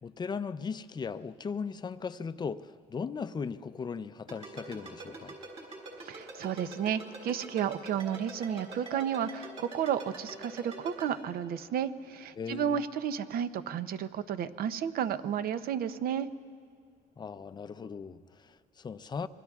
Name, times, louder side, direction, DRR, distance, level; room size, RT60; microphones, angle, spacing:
voice 1, 0.0-5.4 12.4-12.8 17.2-19.3, left 5 dB, 25° left, 13 dB, 0.5 m, -38 dB
Ringtone, 4.3-11.0, right 3 dB, 35° right, 5.3 m, -43 dB
voice 2, 6.0-16.3, right 8 dB, 60° right, 13 dB, 0.7 m, -32 dB
26.0 x 23.0 x 2.4 m, 2.3 s
cardioid pair, 110°, 17 cm